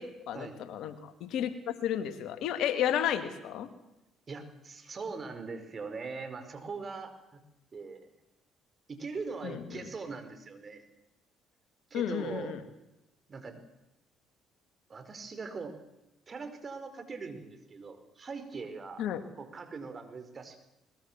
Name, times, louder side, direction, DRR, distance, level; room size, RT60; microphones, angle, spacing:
voice 1, 0.0-3.7 9.4-9.9 11.9-12.6 19.0-19.2, left 10 dB, 65° left, 10 dB, 2.2 m, -32 dB
voice 2, 4.3-7.4 7.7-8.1 8.9-10.8 11.9-12.5 13.3-13.6 14.9-15.8 16.3-19.0 19.4-20.8, right 4 dB, 40° right, 8 dB, 4.7 m, -41 dB
21.5 x 21.0 x 7.4 m, 0.91 s
hypercardioid pair, 55°, 0 cm